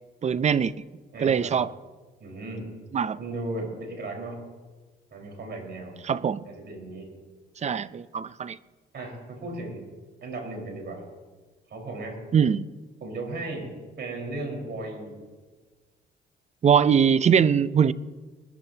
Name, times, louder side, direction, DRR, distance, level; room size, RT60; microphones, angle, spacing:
voice 1, 0.2-0.7 1.2-1.7 2.9-3.2 6.0-6.4 7.6-8.6 12.3-12.7 16.6-17.9, right 7 dB, 35° right, 0.5 m, -22 dB
voice 2, 1.1-1.5 2.2-2.7 3.2-4.4 5.1-6.0 6.4-7.1 8.9-9.9 10.2-11.0 11.7-12.3 13.0-15.2, right 2 dB, 60° right, 4.6 m, -36 dB
21.0 x 14.0 x 2.8 m
cardioid pair, 90°, 20 cm